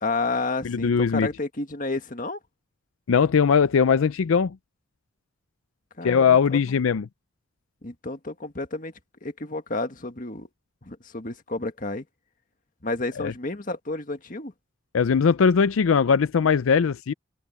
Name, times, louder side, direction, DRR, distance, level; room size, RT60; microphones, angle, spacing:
voice 1, 0.0-2.4 6.0-6.8 7.8-8.9 9.2-10.5 10.8-12.1 12.8-14.5, left 2 dB, 40° left, 1.8 m, -31 dB
voice 2, 0.6-1.3 3.1-4.6 6.0-7.1 13.2-13.3 14.9-17.1, left 6 dB, 90° left, 0.5 m, -20 dB
head